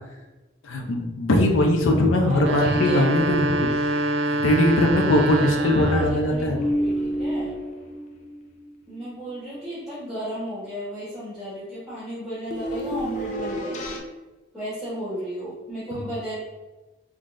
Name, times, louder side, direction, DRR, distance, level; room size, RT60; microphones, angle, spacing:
voice 1, 0.6-3.7 4.3-6.6, left 1 dB, 90° left, 2 dB, 0.5 m, -21 dB
voice 2, 2.2-3.0 5.1-7.5 8.9-14.0 14.5-16.4, right 1 dB, 5° right, -13 dB, 1.3 m, -34 dB
sound 1, 2.3-6.3, right 2 dB, 65° right, 0.3 m, -25 dB
sound 2, 3.7-4.3 4.6-4.7 5.8-8.9 12.5-14.0, equal, 40° left, 0.4 m, -29 dB
3.8 x 3.2 x 2.4 m, 1.1 s
head